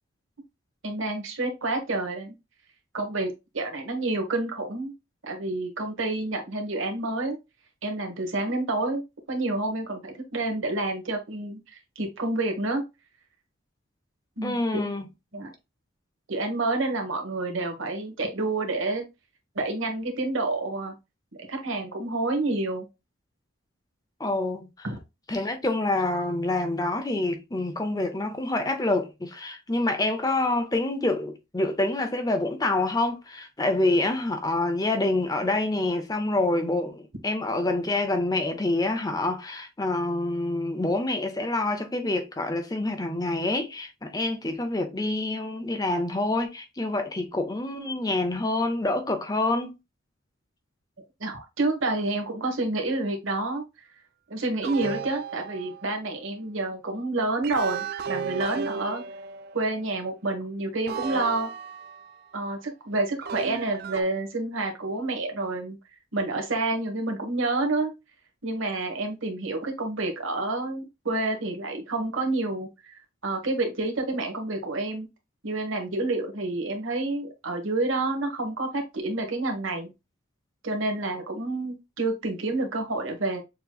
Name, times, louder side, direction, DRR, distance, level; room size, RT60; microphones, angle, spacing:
voice 1, 0.8-2.3 2.9-4.9 5.2-7.4 7.8-9.0 9.3-12.8 14.4-14.8 15.3-15.5 16.3-19.1 19.5-20.9 21.5-22.8 24.8-25.0 51.2-53.6 54.3-59.0 59.5-61.5 62.3-65.8 66.1-67.9 68.4-75.1 75.4-79.9 80.6-83.4, right 2 dB, 75° right, 1.3 m, -29 dB
voice 2, 14.4-15.0 24.2-24.9 25.3-49.8, left 2 dB, 20° left, 0.6 m, -27 dB
sound 1, 54.6-56.1 57.4-59.8 60.9-62.3 63.2-64.0, right 6 dB, 45° right, 0.3 m, -35 dB
6.7 x 3.0 x 2.3 m
head